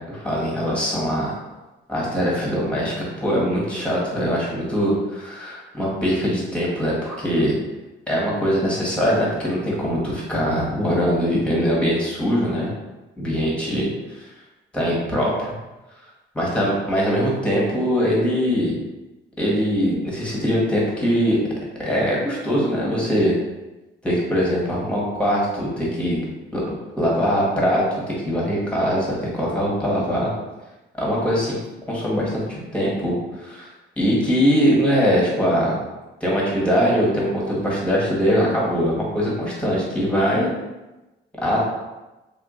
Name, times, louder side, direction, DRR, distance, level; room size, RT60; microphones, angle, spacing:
voice 1, 0.0-1.3 1.9-7.5 8.1-12.7 13.2-13.9 14.2-14.3 14.7-15.5 16.3-18.7 19.4-21.4 21.8-23.3 24.0-26.2 26.5-26.6 27.0-30.3 31.0-31.6 31.9-33.7 34.0-35.7 36.2-40.5 41.4-41.6, equal, 5° left, -5 dB, 1.2 m, -22 dB
2.8 x 2.3 x 3.6 m, 1.1 s
cardioid pair, 90°, 20 cm